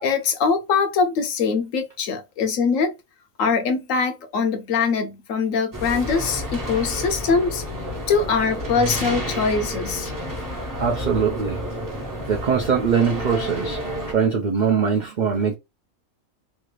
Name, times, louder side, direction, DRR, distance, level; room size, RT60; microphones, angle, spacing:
voice 1, 0.0-2.9 3.4-7.6 8.1-10.1, left 5 dB, 70° left, 1.0 m, -22 dB
sound 1, 5.7-14.1, equal, 20° right, 0.5 m, -30 dB
voice 2, 10.7-11.6 12.3-13.8 14.1-15.5, right 6 dB, 75° right, 0.4 m, -22 dB
3.3 x 2.4 x 3.0 m
omnidirectional pair, 1.5 m